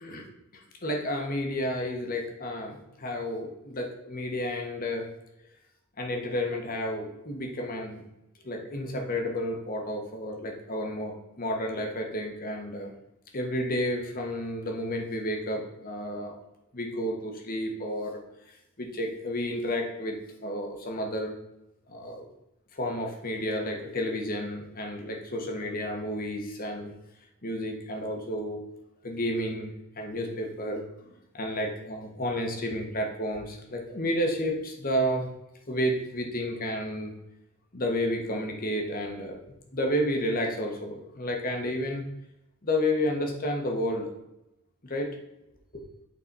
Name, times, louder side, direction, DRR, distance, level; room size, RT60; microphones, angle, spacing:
voice 1, 0.8-5.1 6.0-8.0 8.4-12.9 13.3-16.3 16.7-18.2 18.8-20.1 20.4-21.3 21.9-22.2 22.7-26.9 27.4-28.6 29.0-29.7 30.0-30.8 31.3-35.2 35.7-37.1 37.7-39.4 39.7-42.0 42.6-44.1 44.8-45.1 45.7-45.8, equal, 40° left, 2 dB, 1.2 m, -31 dB
8.6 x 4.0 x 4.1 m, 0.87 s
head